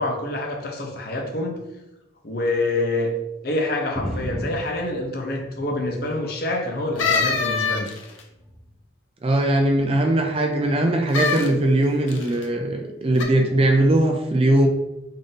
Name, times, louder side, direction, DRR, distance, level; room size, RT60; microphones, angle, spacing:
voice 1, 0.0-1.6 2.2-3.1 3.4-7.9, left 2 dB, 50° left, 0.7 m, -26 dB
sound 1, 3.9-6.2 6.5-7.5 8.3-8.7 9.7-9.9, equal, ahead, 0.7 m, -36 dB
sound 2, 7.0-8.2 11.1-11.5 12.1-12.5 13.2-13.3, left 4 dB, 90° left, 0.6 m, -23 dB
voice 2, 9.2-14.7, right 1 dB, 30° right, 0.4 m, -20 dB
3.7 x 2.6 x 3.8 m
head